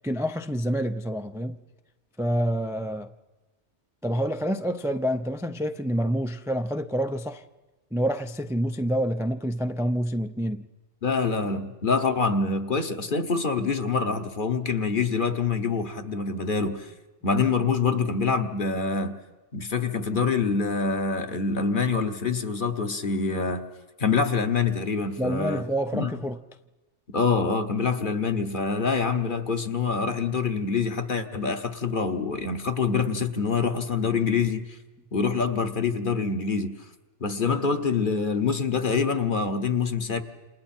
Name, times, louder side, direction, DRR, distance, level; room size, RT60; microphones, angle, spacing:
voice 1, 0.0-1.6 2.2-3.1 4.0-7.4 7.9-10.7 25.2-26.4, equal, 5° right, 0.4 m, -27 dB
voice 2, 11.0-16.9 17.2-19.2 19.5-23.6 24.0-25.7 25.9-26.1 27.1-34.8 35.1-36.8 37.2-40.2, left 5 dB, 45° left, 1.3 m, -25 dB
28.5 x 28.0 x 4.4 m
omnidirectional pair, 1.2 m